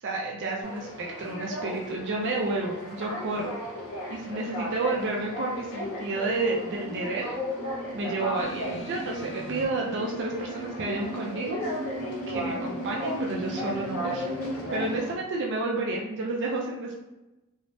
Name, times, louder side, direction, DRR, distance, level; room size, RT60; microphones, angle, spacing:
voice 1, 0.0-3.5 4.1-7.4 7.9-11.6 12.3-14.3 14.7-17.0, right 2 dB, 55° right, -1 dB, 0.4 m, -30 dB
sound 1, 0.6-15.1, left 1 dB, 80° left, 0.7 m, -36 dB
sound 2, 3.6-15.0, right 1 dB, 80° right, 0.7 m, -39 dB
sound 3, 8.3-9.6 10.6-10.7, left 1 dB, 45° left, 0.8 m, -43 dB
3.1 x 2.0 x 2.6 m, 1.0 s
head